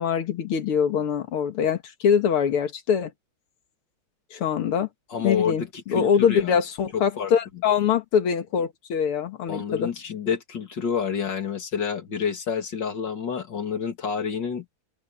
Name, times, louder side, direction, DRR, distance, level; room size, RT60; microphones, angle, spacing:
voice 1, 0.0-3.1 4.3-4.9 5.2-9.9, left 7 dB, 85° left, 2.5 m, -23 dB
voice 2, 5.1-6.6 6.9-7.3 9.5-14.6, left 7 dB, 55° left, 2.9 m, -28 dB
open air
omnidirectional pair, 2.3 m